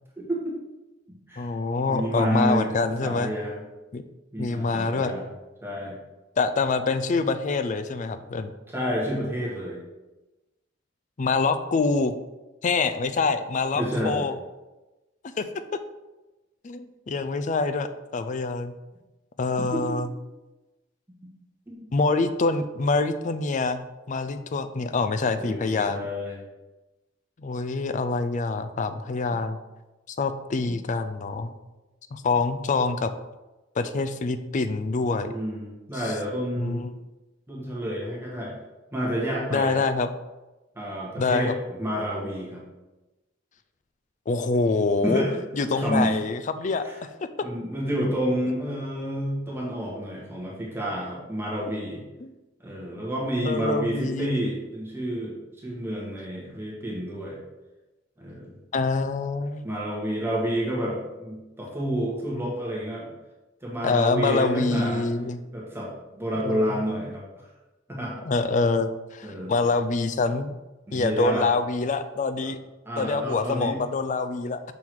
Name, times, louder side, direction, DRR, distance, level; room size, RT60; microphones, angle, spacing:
voice 1, 0.2-0.6 1.1-1.5 1.8-3.6 4.3-5.2 5.6-6.0 8.7-9.8 13.7-14.3 19.6-19.8 21.2-21.3 21.7-21.9 25.4-26.4 35.2-36.9 37.5-38.5 38.9-39.8 40.7-42.6 45.0-45.3 45.7-46.2 46.8-47.0 47.4-52.0 52.6-57.4 58.2-58.5 59.6-63.1 63.6-65.1 65.5-67.2 67.9-68.1 69.2-69.5 70.9-71.5 72.8-73.8, equal, 15° right, -4 dB, 1.4 m, -29 dB
voice 2, 1.4-3.3 3.9-4.0 4.4-5.1 6.4-8.5 11.2-12.1 12.6-14.3 15.4-15.8 16.6-18.7 19.4-20.1 21.9-26.0 27.4-29.6 30.1-31.5 32.1-33.1 33.8-35.3 36.6-36.9 39.5-40.1 41.2-41.5 44.3-45.2 45.5-46.9 52.2-52.3 53.4-54.4 58.7-59.7 63.8-65.4 66.4-66.8 68.2-70.5 70.9-72.6 73.0-74.6, left 3 dB, 40° left, 10 dB, 0.4 m, -25 dB
6.1 x 3.7 x 4.6 m, 1.1 s
head